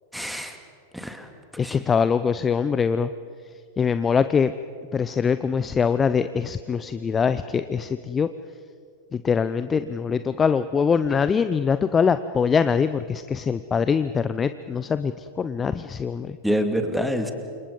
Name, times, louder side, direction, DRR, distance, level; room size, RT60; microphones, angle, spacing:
voice 1, 0.1-0.6 0.9-1.8 16.4-17.3, equal, ahead, 6 dB, 2.4 m, -27 dB
voice 2, 1.6-3.1 3.8-4.5 4.9-8.3 9.1-16.4, left 6 dB, 20° left, 12 dB, 0.7 m, -23 dB
29.5 x 26.0 x 5.4 m, 2.3 s
figure-of-eight pair, 90°, 0 cm